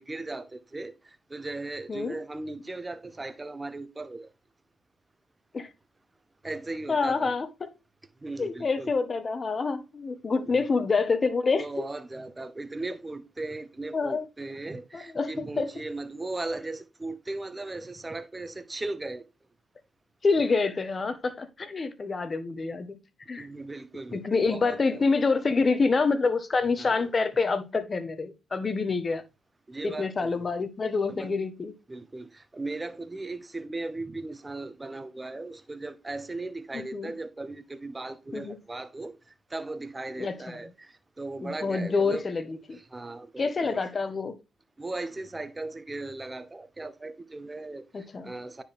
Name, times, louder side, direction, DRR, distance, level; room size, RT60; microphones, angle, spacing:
voice 1, 0.0-4.3 6.4-7.3 8.2-8.9 10.5-10.6 11.6-19.2 23.4-25.0 26.8-27.1 29.7-30.5 31.1-31.3 31.9-42.3 42.7-43.8 44.8-48.6, right 2 dB, 25° right, 1.2 m, -37 dB
voice 2, 6.9-7.7 8.4-11.8 13.9-14.2 14.9-15.7 20.2-23.0 23.3-23.5 24.1-29.2 29.8-31.7 36.7-37.1 38.3-38.6 40.2-40.3 41.4-42.8 43.4-44.4 47.9-48.3, left 4 dB, 40° left, 1.4 m, -27 dB
9.7 x 4.7 x 3.6 m
supercardioid pair, 55°, 0 cm